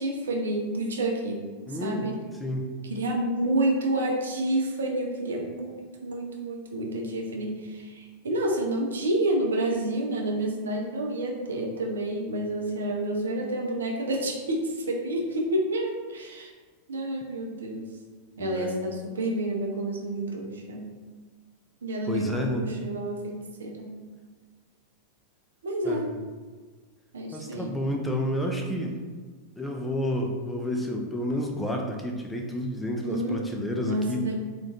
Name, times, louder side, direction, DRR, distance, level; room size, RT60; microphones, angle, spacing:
voice 1, 0.0-1.4 1.8-2.1 2.9-16.5 16.9-17.9 18.4-20.9 21.8-23.9 25.6-26.1 27.1-27.7 33.0-33.4 33.8-34.4, right 1 dB, 65° right, 0 dB, 0.4 m, -29 dB
voice 2, 1.7-2.1 2.4-2.7 18.4-18.8 22.1-22.7 25.8-26.2 27.3-29.0 29.6-34.2, left 1 dB, 10° left, 1 dB, 0.3 m, -30 dB
2.3 x 2.1 x 2.7 m, 1.4 s
figure-of-eight pair, 90°, 0 cm